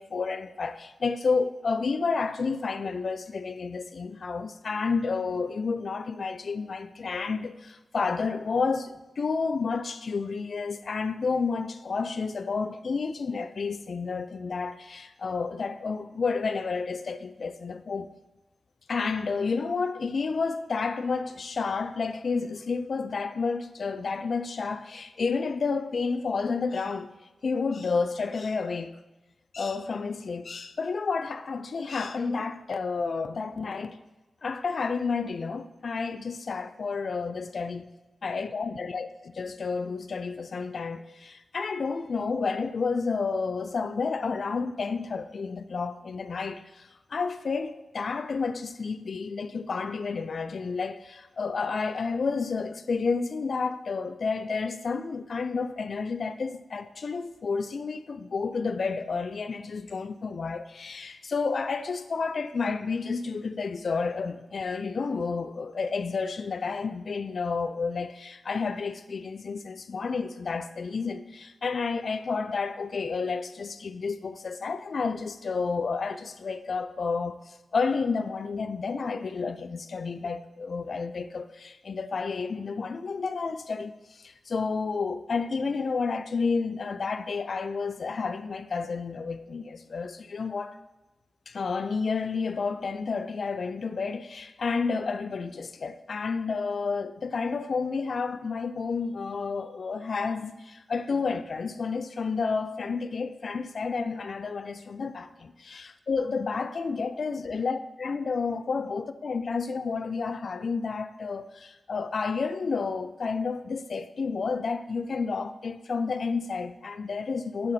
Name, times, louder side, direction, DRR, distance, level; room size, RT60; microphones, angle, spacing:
voice 1, 0.0-18.1 18.9-27.1 27.4-29.0 29.5-34.0 34.4-37.9 38.2-39.1 39.4-90.8 91.5-117.7, left 4 dB, 65° left, 0.4 m, -30 dB
7.6 x 3.8 x 4.2 m
cardioid pair, 45°, 0 cm